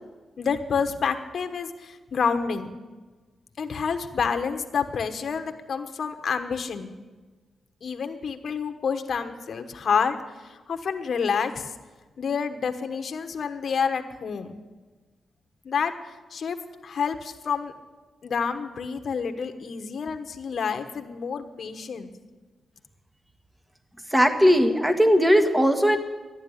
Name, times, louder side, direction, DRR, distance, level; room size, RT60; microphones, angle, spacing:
voice 1, 0.4-2.7 3.6-6.9 7.8-11.7 12.2-14.6 15.6-15.9 16.3-16.6 16.8-17.7 18.2-22.1, left 6 dB, 60° left, 7 dB, 1.2 m, -28 dB
voice 2, 24.1-26.0, equal, 10° right, 7 dB, 1.6 m, -18 dB
12.0 x 11.0 x 9.8 m, 1.3 s
cardioid pair, 90°, 0 cm